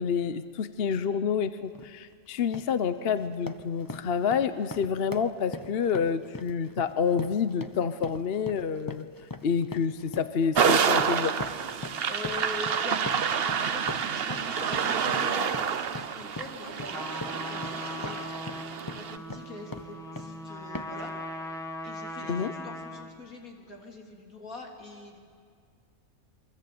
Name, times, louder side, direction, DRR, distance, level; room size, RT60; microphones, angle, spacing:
voice 1, 0.0-9.0 9.4-11.3 22.3-22.5, left 6 dB, 50° left, 12 dB, 0.9 m, -28 dB
sound 1, 1.7-1.9 2.3-2.8 3.1-20.4 20.7-21.1, left 2 dB, 20° left, 0.8 m, -42 dB
sound 2, 10.5-19.2, right 7 dB, 50° right, 0.9 m, -28 dB
voice 2, 11.8-18.6 18.9-21.1 21.8-25.2, left 2 dB, 75° left, 1 dB, 3.9 m, -43 dB
Trumpet, 16.9-23.2, left 1 dB, ahead, 2.0 m, -39 dB
28.5 x 23.5 x 8.7 m, 2.1 s
omnidirectional pair, 1.5 m